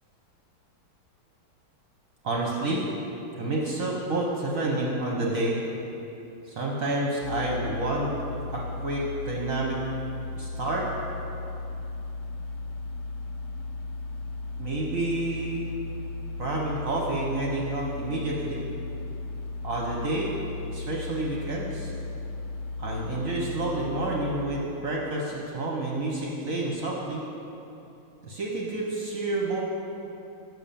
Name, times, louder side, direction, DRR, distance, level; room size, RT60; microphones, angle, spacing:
voice 1, 2.2-2.9 3.3-5.6 6.5-8.1 8.5-9.8 10.3-10.9 14.6-15.7 16.4-18.6 19.6-20.3 20.7-21.9 22.8-27.2 28.2-29.6, right 2 dB, 55° right, -2 dB, 1.0 m, -29 dB
sound 1, 7.2-24.5, left 3 dB, 90° left, 1.6 m, -36 dB
6.4 x 6.2 x 7.0 m, 2.8 s
omnidirectional pair, 2.3 m